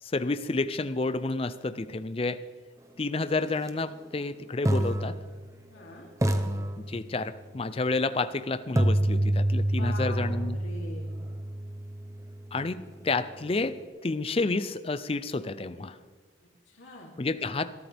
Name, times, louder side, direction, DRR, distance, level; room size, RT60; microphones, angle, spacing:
voice 1, 0.0-2.4 3.0-5.2 6.8-10.6 12.5-16.0 17.2-17.7, left 3 dB, 30° left, 13 dB, 0.5 m, -30 dB
sound 1, 3.6-3.7 4.7-5.8 6.2-7.5 8.8-12.7, right 1 dB, 15° right, 0.7 m, -28 dB
voice 2, 5.7-6.1 9.8-11.1 16.7-17.1, left 2 dB, 90° left, -3 dB, 3.0 m, -43 dB
21.0 x 13.0 x 3.5 m, 1.5 s
head